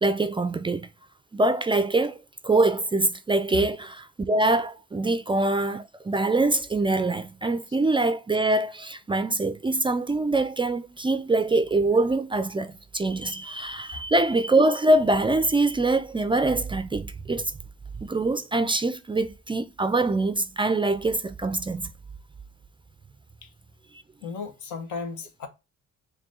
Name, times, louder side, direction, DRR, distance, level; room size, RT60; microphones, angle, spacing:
voice 1, 0.0-0.9 1.3-2.2 2.4-17.5 18.0-21.9, right 2 dB, 15° right, 0.3 m, -24 dB
voice 2, 24.2-25.5, left 5 dB, 80° left, 1.0 m, -35 dB
4.7 x 2.6 x 3.6 m
cardioid pair, 90°, 30 cm